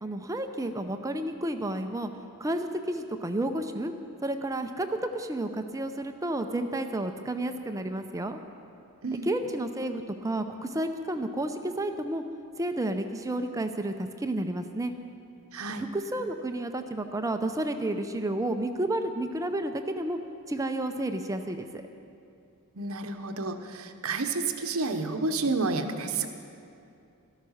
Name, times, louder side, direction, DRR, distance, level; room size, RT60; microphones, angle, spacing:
voice 1, 0.0-2.1 2.4-3.9 4.2-8.4 9.1-12.2 12.6-14.9 15.7-20.2 20.5-21.8, right 1 dB, 15° right, 7 dB, 0.6 m, -31 dB
voice 2, 15.5-15.9 22.7-26.3, right 3 dB, 65° right, 6 dB, 1.0 m, -30 dB
13.0 x 12.5 x 6.4 m, 2.6 s
head